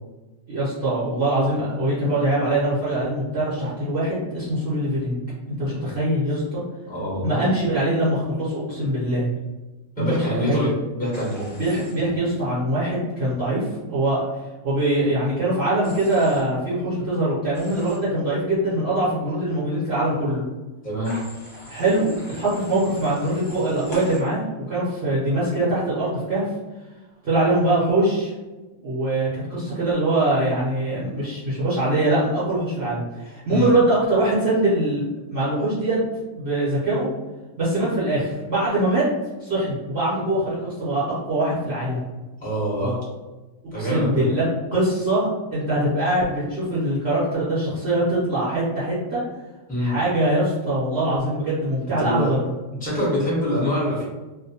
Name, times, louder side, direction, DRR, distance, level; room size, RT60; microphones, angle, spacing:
voice 1, 0.5-5.2 5.6-6.6 7.2-9.3 10.0-10.7 11.6-14.2 14.6-20.4 21.7-26.5 27.2-28.3 28.8-36.0 36.3-37.1 37.6-39.0 39.4-42.0 43.8-44.4 44.7-49.2 49.8-52.4, right 1 dB, 50° right, -10 dB, 0.9 m, -23 dB
voice 2, 6.9-7.4 10.0-11.5 20.8-21.1 33.5-33.7 42.4-43.0 43.7-44.3 49.7-49.9 52.0-52.3 52.8-54.0, equal, 5° left, -7 dB, 0.7 m, -25 dB
Human voice / Train, 11.1-11.9 15.8-16.4 17.5-18.0 21.0-24.2, left 2 dB, 35° left, 1.0 m, -41 dB
2.6 x 2.1 x 2.7 m, 1.2 s
omnidirectional pair, 1.6 m